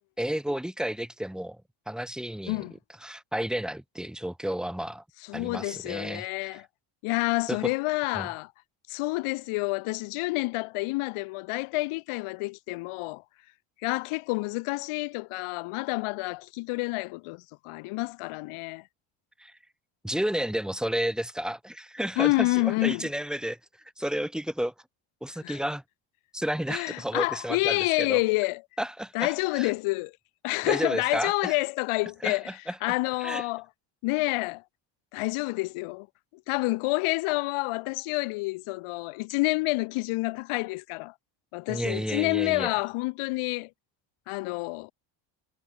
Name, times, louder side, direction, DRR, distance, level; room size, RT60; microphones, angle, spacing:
voice 1, 0.2-2.6 3.0-5.0 5.3-6.6 7.5-7.6 8.1-8.3 19.4-19.5 20.0-23.6 24.0-24.7 25.2-25.8 26.3-28.2 28.8-29.7 30.6-31.6 32.2-33.0 33.2-33.4 41.7-42.7, right 1 dB, ahead, 3.8 m, -32 dB
voice 2, 5.3-6.7 7.0-8.5 8.9-13.2 13.8-18.8 22.2-23.1 25.4-25.6 26.7-28.6 29.1-30.1 30.4-32.5 32.8-33.7 34.0-34.6 35.1-36.1 36.5-41.1 41.5-43.7 44.3-44.9, left 24 dB, 90° left, 4.5 m, -28 dB
cardioid pair, 175°, 49 cm